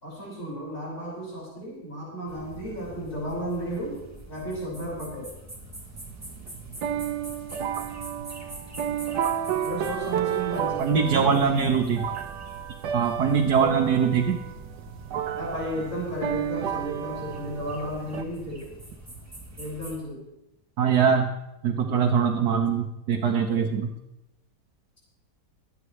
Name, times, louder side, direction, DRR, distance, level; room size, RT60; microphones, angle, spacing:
voice 1, 0.0-4.0 4.3-5.3 9.6-11.4 15.3-18.6 19.6-20.2, equal, 50° left, -7 dB, 5.9 m, -33 dB
sound 1, 2.3-20.0, right 1 dB, 10° right, 2.3 m, -45 dB
sound 2, 5.6-18.2, right 9 dB, 90° right, 1.4 m, -32 dB
voice 2, 10.8-12.1 12.9-14.4 20.8-21.3 21.6-23.9, right 6 dB, 70° right, 1 dB, 1.5 m, -22 dB
23.5 x 9.1 x 3.2 m, 0.94 s
omnidirectional pair, 1.8 m